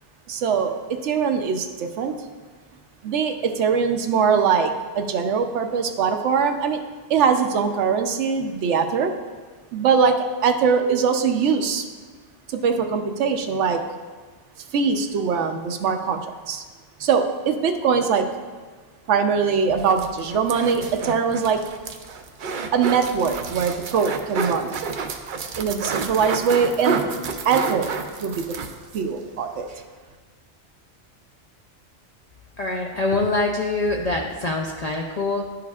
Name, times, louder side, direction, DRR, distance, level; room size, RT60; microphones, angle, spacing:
voice 1, 0.3-2.1 3.0-6.8 7.1-9.1 9.7-11.9 12.5-13.8 14.7-16.6 17.0-18.3 19.1-21.6 22.7-24.8 25.6-27.0 27.4-27.9 28.2-28.6 28.9-29.7, right 6 dB, 80° right, 7 dB, 0.9 m, -22 dB
sound 1, 19.7-29.1 29.4-29.5 29.7-29.8, right 5 dB, 60° right, 0.5 m, -30 dB
voice 2, 32.6-35.5, left 2 dB, 55° left, 0 dB, 0.4 m, -24 dB
11.5 x 4.9 x 2.3 m, 1.4 s
omnidirectional pair, 1.2 m